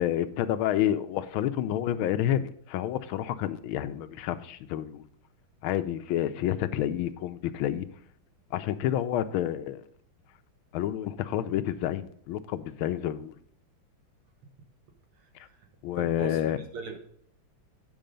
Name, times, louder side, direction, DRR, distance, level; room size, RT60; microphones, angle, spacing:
voice 1, 0.0-5.0 5.6-7.9 8.5-9.8 10.7-13.3 15.8-16.6, left 11 dB, 80° left, 11 dB, 1.4 m, -29 dB
voice 2, 16.0-17.0, right 4 dB, 85° right, 5 dB, 2.2 m, -39 dB
8.8 x 5.5 x 5.1 m, 0.62 s
omnidirectional pair, 2.3 m